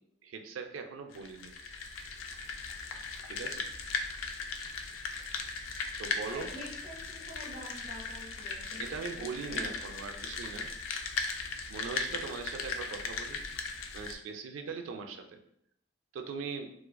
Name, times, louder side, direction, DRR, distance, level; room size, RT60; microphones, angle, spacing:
voice 1, 0.2-1.6 3.2-3.7 6.0-6.5 8.8-10.7 11.7-13.4 13.9-15.4 16.1-16.7, right 5 dB, 85° right, 5 dB, 0.3 m, -40 dB
sound 1, 1.1-14.1, left 4 dB, 85° left, 0.3 m, -38 dB
voice 2, 6.3-8.8 9.2-9.7, equal, 35° right, -3 dB, 0.7 m, -47 dB
2.4 x 2.3 x 2.2 m, 0.75 s
head